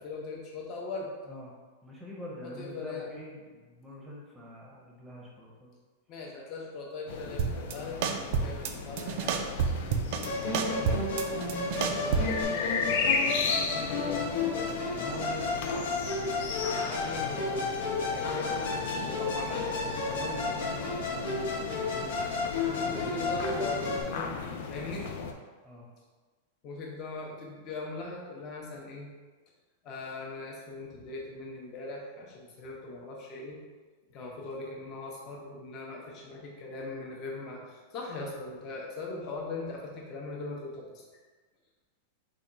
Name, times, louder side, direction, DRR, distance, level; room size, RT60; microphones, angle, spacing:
voice 1, 0.0-1.1 2.4-3.1 6.1-9.5 10.6-11.0 11.9-14.7 16.9-19.7 22.8-24.4 24.7-25.1 26.6-29.1 29.8-33.6 34.1-41.0, left 3 dB, 30° left, -2 dB, 0.7 m, -40 dB
voice 2, 1.8-5.7 14.9-15.8 18.1-18.6 20.1-22.3 22.8-23.2 25.6-25.9, equal, 5° right, -4 dB, 0.7 m, -44 dB
sound 1, 7.1-25.3, left 5 dB, 60° left, 0.4 m, -36 dB
sound 2, 7.4-7.7 8.0-8.7 9.0-10.3 10.5-12.4, right 6 dB, 50° right, 0.3 m, -29 dB
Musical instrument, 10.2-24.0, left 3 dB, 80° left, 0.9 m, -32 dB
3.5 x 2.2 x 3.9 m, 1.4 s
supercardioid pair, 160°, 0 cm